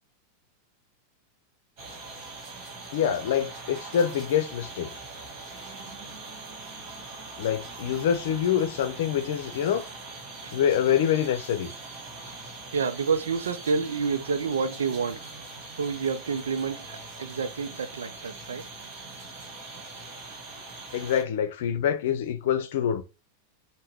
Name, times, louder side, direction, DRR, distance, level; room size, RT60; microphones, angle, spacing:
sound 1, 1.8-21.2, right 3 dB, 40° right, 1.6 m, -42 dB
voice 1, 2.9-4.9 7.4-9.8 10.5-11.7 20.9-23.0, left 9 dB, 55° left, 0.6 m, -25 dB
voice 2, 12.7-15.2 15.8-18.6, right 5 dB, 65° right, 0.5 m, -29 dB
5.5 x 2.1 x 3.3 m
figure-of-eight pair, 90°, 0 cm